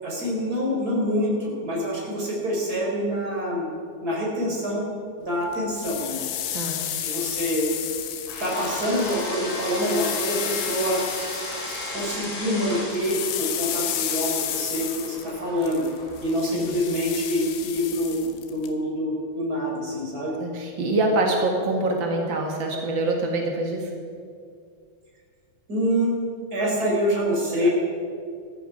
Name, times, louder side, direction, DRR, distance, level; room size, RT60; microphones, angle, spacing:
voice 1, 0.0-3.7 4.0-4.9 5.2-6.2 7.0-7.7 8.4-11.0 11.9-15.8 16.2-20.3 25.7-26.1 26.5-27.7, equal, 20° right, -4 dB, 4.4 m, -26 dB
sound 1, 5.5-12.3 12.6-18.7, left 10 dB, 90° left, 3.4 m, -32 dB
voice 2, 6.5-6.8 16.5-16.9 20.4-23.9 27.6-27.7, right 2 dB, 85° right, 1 dB, 1.0 m, -25 dB
sound 2, 8.3-16.4, left 2 dB, 60° left, 4.6 m, -35 dB
17.5 x 14.0 x 5.0 m, 2.2 s
omnidirectional pair, 5.0 m